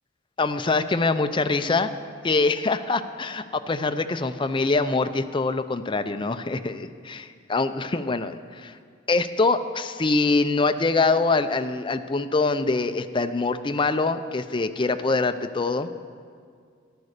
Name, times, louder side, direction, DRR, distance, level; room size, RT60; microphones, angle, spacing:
voice 1, 0.4-1.9 2.2-8.8 9.1-15.9, left 3 dB, 25° left, 9 dB, 0.5 m, -24 dB
13.5 x 11.0 x 6.6 m, 2.1 s
head